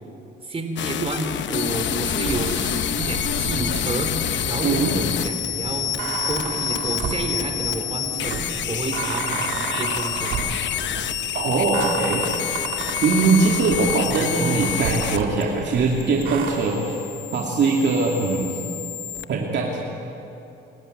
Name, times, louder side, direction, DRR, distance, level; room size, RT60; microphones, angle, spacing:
voice 1, 0.4-4.1 4.5-10.5, right 2 dB, 30° right, 5 dB, 3.7 m, -30 dB
sound 1, 0.8-19.2, left 11 dB, 65° left, 0.9 m, -28 dB
sound 2, 2.1-16.5, right 6 dB, 85° right, 2.8 m, -33 dB
voice 2, 4.6-5.0 11.3-12.3 13.0-16.9 17.3-18.6 19.3-19.8, right 4 dB, 60° right, -2 dB, 2.7 m, -21 dB
27.0 x 13.5 x 9.4 m, 2.8 s
cardioid pair, 90°, 20 cm